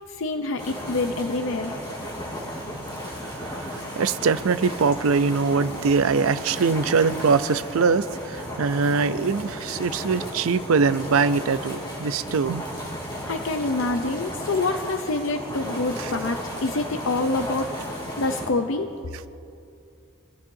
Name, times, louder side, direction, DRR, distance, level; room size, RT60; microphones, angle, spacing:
voice 1, 0.1-1.8 13.3-18.9, left 2 dB, 60° left, 6 dB, 0.6 m, -26 dB
sound 1, 0.6-18.5, equal, 20° left, 3.5 m, -34 dB
voice 2, 3.2-12.7, right 5 dB, 75° right, 13 dB, 0.5 m, -23 dB
25.5 x 15.5 x 2.7 m, 2.5 s
head